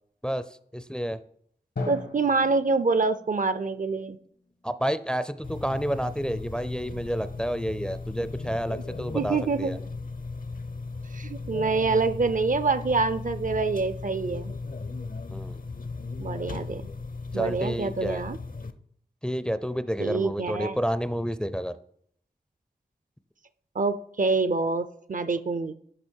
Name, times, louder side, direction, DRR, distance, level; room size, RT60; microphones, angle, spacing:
voice 1, 0.7-1.2 4.6-9.8 15.3-15.6 17.3-18.2 19.2-21.8, equal, 5° left, 13 dB, 0.5 m, -30 dB
Drum, 1.8-5.5, left 2 dB, 80° left, 1.5 m, -40 dB
voice 2, 1.9-4.2 9.1-9.7 11.1-14.5 16.2-16.9 17.3-18.4 20.0-20.8 23.7-25.7, right 4 dB, 50° right, 13 dB, 0.5 m, -26 dB
sound 1, 5.4-18.7, left 3 dB, 55° left, 0.7 m, -36 dB
11.0 x 5.1 x 4.5 m, 0.66 s
wide cardioid pair, 50°, 17 cm